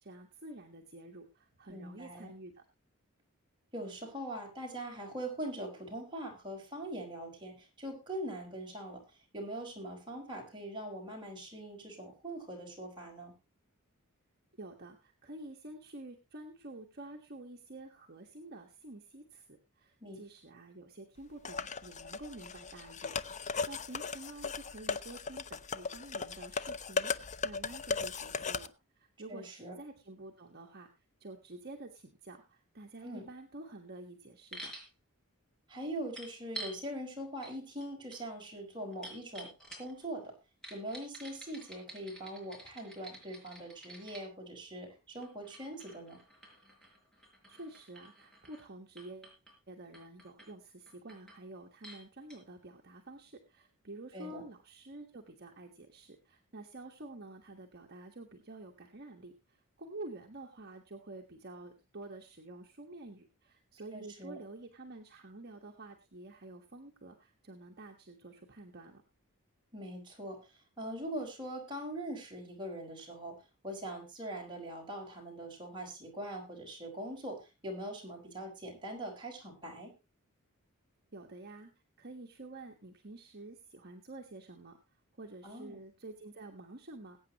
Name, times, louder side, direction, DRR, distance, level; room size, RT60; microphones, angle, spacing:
voice 1, 0.0-2.6 14.6-27.1 27.4-34.7 47.5-49.4 49.7-69.0 81.1-81.7 82.0-84.8 85.1-87.2, right 2 dB, 45° right, 1 dB, 1.4 m, -49 dB
voice 2, 1.7-2.3 3.7-13.3 20.0-20.2 29.3-29.8 33.0-33.3 35.7-39.5 39.8-40.3 40.7-46.2 54.1-54.4 63.9-64.4 69.7-70.4 70.8-73.3 73.6-79.9 85.4-85.8, right 1 dB, 20° right, -1 dB, 4.9 m, -42 dB
sound 1, 21.4-28.7, left 5 dB, 35° left, 0.6 m, -37 dB
sound 2, 34.5-34.9 36.2-36.8 37.4-37.5 37.8-40.1 40.6-44.3 45.2-48.7 49.0-49.5 49.9-50.5 50.9-51.4 51.8-52.0 52.3-52.4, right 1 dB, 5° left, 4.7 m, -49 dB
21.0 x 8.9 x 3.0 m, 0.26 s
head